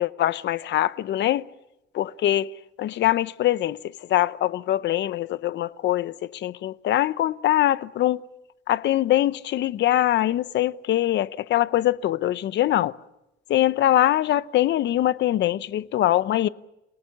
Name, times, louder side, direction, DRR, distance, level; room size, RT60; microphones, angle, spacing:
voice 1, 0.0-1.5 1.9-2.5 2.8-8.3 8.7-12.9 13.5-16.5, left 13 dB, 65° left, 0.8 m, -23 dB
29.5 x 18.5 x 7.2 m
cardioid pair, 150°, 19 cm